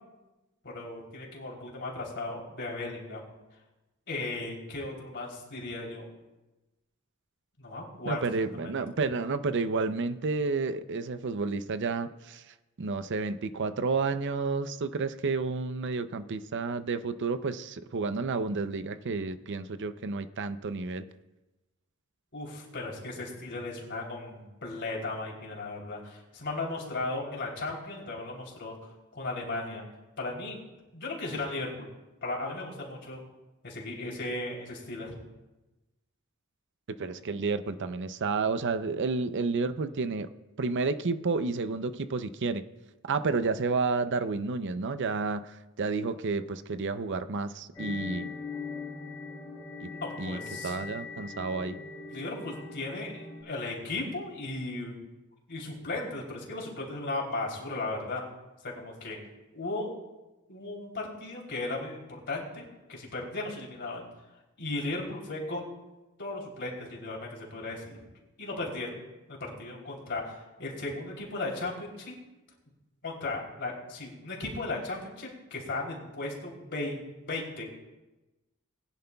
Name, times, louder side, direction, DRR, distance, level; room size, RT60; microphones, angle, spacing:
voice 1, 0.6-3.3 4.1-6.0 7.6-8.4 22.3-28.7 29.1-29.8 30.2-30.6 30.9-31.9 32.2-33.2 33.6-35.1 49.9-50.7 52.1-54.9 55.5-58.2 58.6-59.2 59.5-59.9 60.5-64.1 64.6-65.7 66.2-68.0 68.4-69.0 69.3-72.1 73.0-77.7, left 2 dB, 60° left, -2 dB, 3.2 m, -36 dB
voice 2, 8.0-12.4 12.8-21.0 37.0-40.3 40.6-42.6 43.0-45.5 45.8-48.3 49.8-49.9 50.2-51.8, right 4 dB, 60° right, 11 dB, 0.6 m, -30 dB
sound 1, 47.7-53.4, left 4 dB, 15° left, 2.5 m, -40 dB
20.0 x 10.5 x 2.3 m, 1.1 s
head